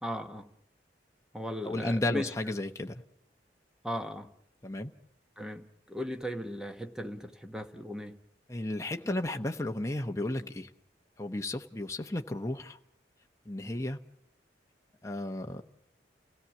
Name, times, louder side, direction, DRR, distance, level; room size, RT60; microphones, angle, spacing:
voice 1, 0.0-0.5 1.3-2.3 3.8-4.3 5.4-8.2, equal, 5° right, 1.1 m, -37 dB
voice 2, 1.6-3.0 4.6-4.9 8.5-10.7 11.2-12.8 13.5-14.0 15.0-15.6, left 1 dB, 15° left, 0.8 m, -33 dB
29.5 x 17.0 x 7.2 m
head